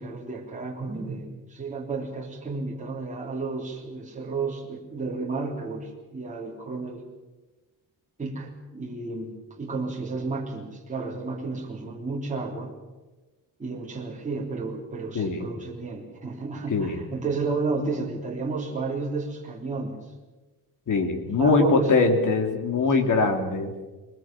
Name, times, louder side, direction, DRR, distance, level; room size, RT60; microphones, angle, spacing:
voice 1, 0.0-7.0 8.2-12.7 13.6-20.0 21.3-22.0, right 3 dB, 20° right, -2 dB, 3.4 m, -32 dB
voice 2, 15.1-15.5 16.7-17.0 20.9-23.7, left 4 dB, 50° left, 5 dB, 2.9 m, -22 dB
22.0 x 21.0 x 7.5 m, 1.2 s
wide cardioid pair, 165°, 39 cm